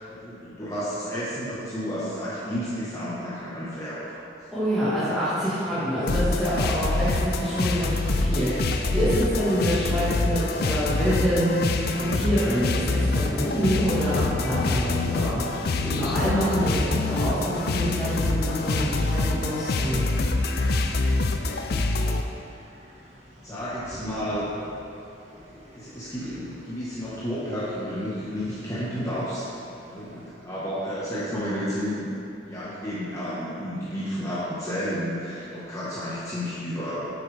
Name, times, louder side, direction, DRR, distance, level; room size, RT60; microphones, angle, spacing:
voice 1, 0.0-4.2 23.4-24.5 25.4-29.5 29.8-37.0, equal, 20° left, -10 dB, 1.2 m, -31 dB
voice 2, 4.5-15.5 15.8-20.4, equal, ahead, -14 dB, 1.5 m, -26 dB
sound 1, 6.1-22.2, left 3 dB, 60° left, 0.4 m, -26 dB
sound 2, 11.9-30.3, equal, 40° right, 1.2 m, -42 dB
8.6 x 6.3 x 3.3 m, 2.8 s
head